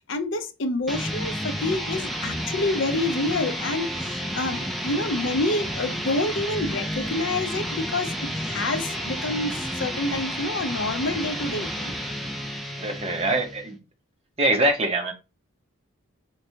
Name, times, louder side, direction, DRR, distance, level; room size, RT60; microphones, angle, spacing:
voice 1, 0.1-11.9, left 2 dB, 60° left, 0.5 m, -28 dB
sound 1, 0.9-13.7, equal, ahead, 0.3 m, -31 dB
voice 2, 12.8-13.8 14.4-15.1, right 2 dB, 30° right, 0.7 m, -23 dB
3.4 x 3.2 x 2.7 m
head